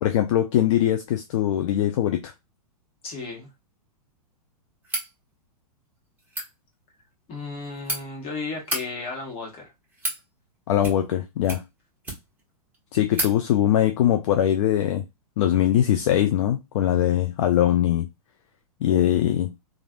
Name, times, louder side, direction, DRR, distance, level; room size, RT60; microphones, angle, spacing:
voice 1, 0.0-2.3 10.7-11.6 12.9-15.0 15.4-18.1 18.8-19.5, left 11 dB, 50° left, 0.4 m, -21 dB
voice 2, 3.0-3.5 7.3-9.7, left 3 dB, 30° left, 1.4 m, -34 dB
sound 1, 4.8-5.1 6.2-6.5 7.4-8.0 8.6-8.8 9.6-10.2 10.8-11.2 11.4-12.4 12.7-12.8 13.1-13.3, right 1 dB, 10° right, 1.3 m, -31 dB
3.1 x 2.5 x 2.4 m
figure-of-eight pair, 105°, 20 cm